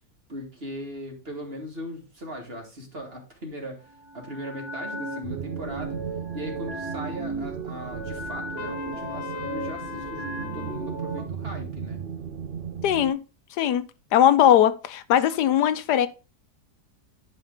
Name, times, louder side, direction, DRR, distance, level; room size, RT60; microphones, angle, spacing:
voice 1, 0.3-6.0 6.3-12.0, equal, 35° right, 2.4 m, -38 dB
sound 1, 3.8-11.2, right 2 dB, 80° right, 2.3 m, -36 dB
sound 2, 5.2-13.1, right 7 dB, 55° right, 0.6 m, -36 dB
Trumpet, 8.6-10.8, left 10 dB, 60° left, 0.6 m, -38 dB
voice 2, 12.8-13.2 13.6-13.8 14.1-16.1, left 10 dB, 85° left, 1.3 m, -19 dB
10.0 x 5.6 x 3.8 m
omnidirectional pair, 1.7 m